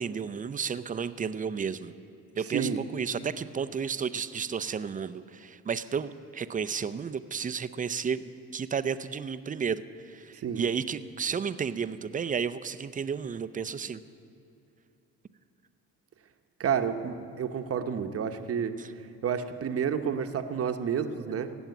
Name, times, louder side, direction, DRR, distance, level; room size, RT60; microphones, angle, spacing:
voice 1, 0.0-1.9 2.4-14.0 18.8-18.9, right 6 dB, 25° right, 13 dB, 0.5 m, -32 dB
voice 2, 16.6-21.5, right 7 dB, 50° right, 8 dB, 0.9 m, -30 dB
16.5 x 7.2 x 9.4 m, 2.7 s
cardioid pair, 90°, 30 cm